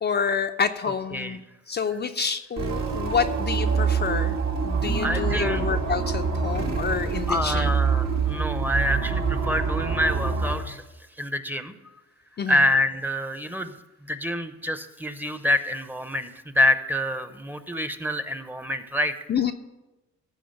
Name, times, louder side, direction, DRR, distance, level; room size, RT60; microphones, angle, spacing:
voice 1, 0.0-1.4 1.7-7.7 12.4-12.7 19.3-19.5, left 6 dB, 35° left, 6 dB, 0.5 m, -28 dB
voice 2, 0.8-1.4 5.0-5.6 7.3-10.8 11.2-11.7 12.5-13.8 14.0-16.3 16.5-19.1, left 1 dB, 5° right, 10 dB, 0.8 m, -26 dB
sound 1, 2.6-10.6, right 5 dB, 60° right, 1.8 m, -25 dB
sound 2, 4.8-8.0, left 4 dB, 90° left, 1.4 m, -40 dB
14.5 x 4.9 x 6.6 m, 1.0 s
cardioid pair, 90°, 30 cm